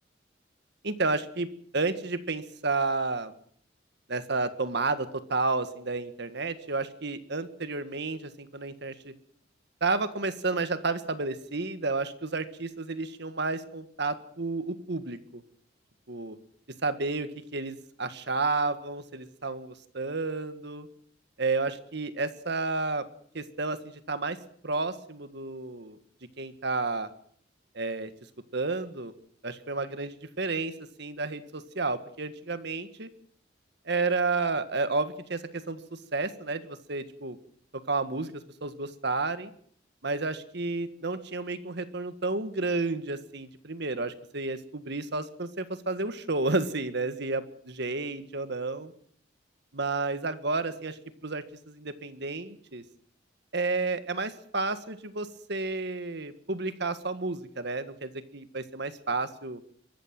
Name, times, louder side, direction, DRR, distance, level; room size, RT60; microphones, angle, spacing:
voice 1, 0.8-1.5 1.7-3.3 4.1-9.1 9.8-15.4 16.1-16.4 16.8-20.9 21.4-23.1 23.3-24.4 24.6-26.0 26.4-27.1 27.8-28.1 28.5-29.1 29.4-30.7 31.0-33.1 33.9-37.4 37.9-39.5 40.0-48.9 49.7-52.8 53.5-59.7, right 3 dB, 60° right, 11 dB, 1.7 m, -31 dB
23.5 x 13.5 x 9.2 m, 0.62 s
head